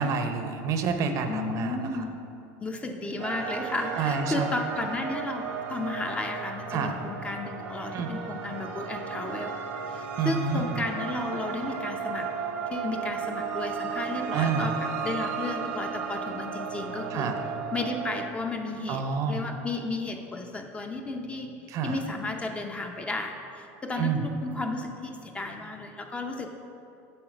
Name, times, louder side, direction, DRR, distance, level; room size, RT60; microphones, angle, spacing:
voice 1, 0.0-1.9 4.0-4.5 6.7-7.0 7.9-8.1 10.2-10.6 14.3-14.7 17.1-17.4 18.9-19.4 21.7-22.0 24.0-24.2, right 5 dB, 45° right, 7 dB, 0.6 m, -28 dB
voice 2, 1.3-2.1 2.6-9.6 9.9-12.3 12.7-17.3 17.7-21.5 21.8-26.5, left 2 dB, 15° left, 4 dB, 0.5 m, -33 dB
sound 1, 3.2-18.3, right 6 dB, 90° right, 0.9 m, -34 dB
7.8 x 4.1 x 6.0 m, 2.7 s
supercardioid pair, 130°, 7 cm